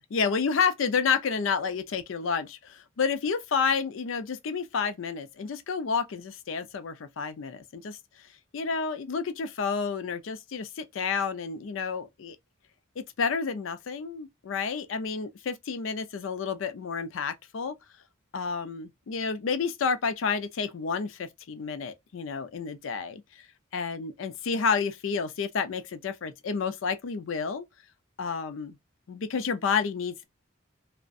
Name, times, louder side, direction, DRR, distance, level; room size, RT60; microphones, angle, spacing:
voice 1, 0.0-8.0 8.5-12.4 13.0-17.7 18.3-23.2 23.7-27.7 28.2-28.8 29.1-30.2, left 5 dB, 75° left, 0.4 m, -30 dB
2.6 x 2.1 x 2.4 m
head